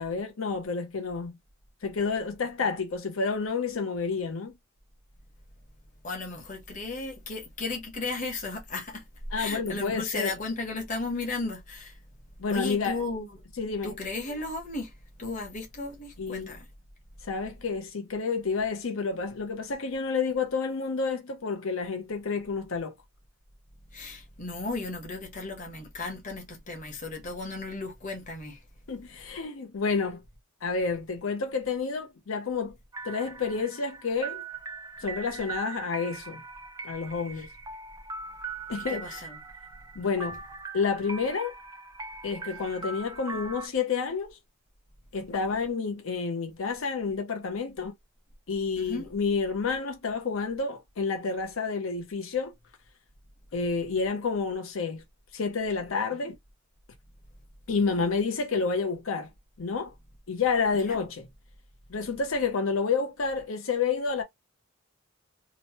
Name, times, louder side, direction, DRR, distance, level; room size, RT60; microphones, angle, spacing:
voice 1, 0.0-1.3 1.8-4.5 9.3-10.4 12.4-13.0 13.6-13.9 16.2-16.6 17.2-22.9 28.9-30.2 30.6-32.7 33.0-34.4 35.0-36.4 36.8-37.5 38.7-39.3 40.0-40.4 40.7-41.5 42.2-44.4 45.1-47.9 48.5-52.5 53.5-55.0 55.3-56.4 57.7-59.3 59.6-59.9 60.3-61.3 61.9-64.2, left 5 dB, 85° left, 0.6 m, -29 dB
voice 2, 6.0-9.0 9.4-11.9 12.5-13.3 13.8-14.9 15.2-16.7 23.9-28.6 38.9-39.4 48.8-49.1 60.7-61.0, left 3 dB, 40° left, 1.0 m, -35 dB
sound 1, 32.9-43.7, right 4 dB, 15° right, 0.4 m, -40 dB
2.9 x 2.0 x 2.9 m
head